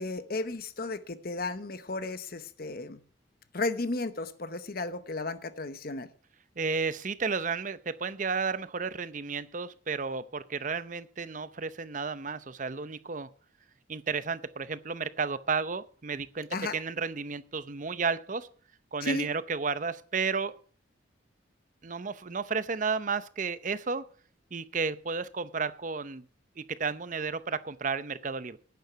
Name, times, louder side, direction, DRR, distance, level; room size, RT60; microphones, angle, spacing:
voice 1, 0.0-3.0 3.5-6.1 16.5-16.8 19.0-19.3, left 2 dB, 50° left, 12 dB, 0.9 m, -34 dB
voice 2, 6.6-13.3 13.9-16.5 16.7-18.5 18.9-20.6 21.8-24.0 24.5-26.3 26.6-28.6, right 5 dB, 40° right, 15 dB, 0.6 m, -32 dB
11.5 x 9.3 x 5.8 m, 0.43 s
head